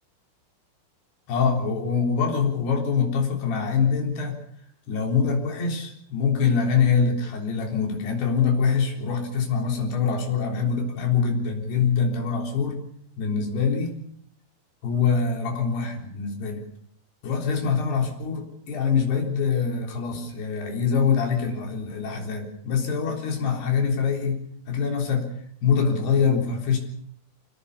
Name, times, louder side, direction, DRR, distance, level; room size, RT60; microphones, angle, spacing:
voice 1, 1.3-4.4 4.9-12.8 13.2-14.0 14.8-16.6 17.2-25.3 25.6-26.8, left 6 dB, 55° left, 2 dB, 5.6 m, -24 dB
25.0 x 19.0 x 6.8 m, 0.64 s
omnidirectional pair, 5.7 m